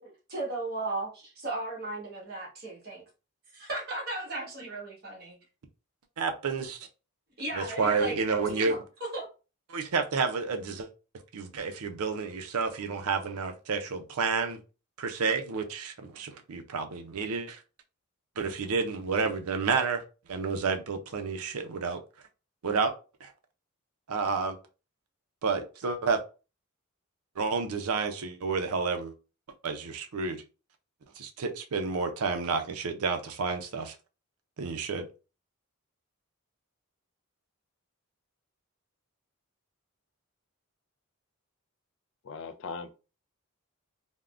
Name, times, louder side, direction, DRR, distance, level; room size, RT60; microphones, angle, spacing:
voice 1, 0.0-3.0 3.5-5.4 7.4-8.2 8.5-9.3, right 2 dB, 45° right, 1.2 m, -36 dB
voice 2, 6.2-6.8 7.5-8.8 9.7-10.9 11.3-14.6 15.0-17.6 18.4-20.0 20.3-22.0 22.6-22.9 23.2-23.3 24.1-24.6 25.4-26.2 27.4-29.1 29.6-30.4 31.2-33.9 34.6-35.1, right 4 dB, 85° right, 0.5 m, -30 dB
voice 3, 42.2-42.9, left 4 dB, 60° left, 0.3 m, -39 dB
3.5 x 2.1 x 2.4 m
head